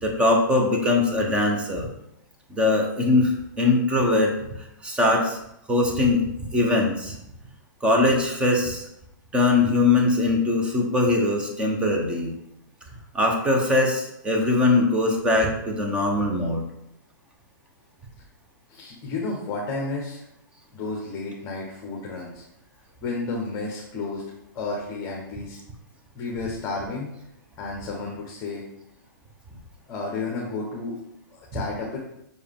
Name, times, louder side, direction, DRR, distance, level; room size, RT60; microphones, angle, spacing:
voice 1, 0.0-1.9 2.5-4.3 4.8-5.4 5.7-6.2 6.5-7.2 7.8-8.9 9.3-12.3 13.1-16.7, left 2 dB, 10° right, 1 dB, 1.0 m, -21 dB
voice 2, 18.7-20.2 20.7-22.4 23.0-24.2 24.5-25.6 26.1-27.1 27.6-28.6 29.9-31.0 31.3-32.0, left 3 dB, 25° left, -2 dB, 1.2 m, -31 dB
6.3 x 4.7 x 3.6 m, 0.80 s
hypercardioid pair, 155°, 11 cm